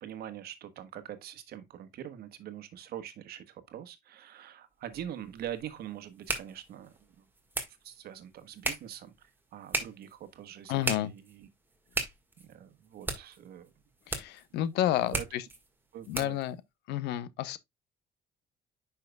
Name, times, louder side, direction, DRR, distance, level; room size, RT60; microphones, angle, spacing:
voice 1, 0.0-7.2 7.8-11.5 12.4-13.7 14.5-14.6 15.1-15.2 15.9-16.4, right 10 dB, 70° right, 1.3 m, -44 dB
sound 1, 4.9-16.5, right 2 dB, 10° right, 1.6 m, -39 dB
voice 2, 10.7-11.1 14.1-15.5 16.1-16.6 16.9-17.6, left 12 dB, 85° left, 0.7 m, -30 dB
9.1 x 5.6 x 2.2 m
cardioid pair, 110°, 17 cm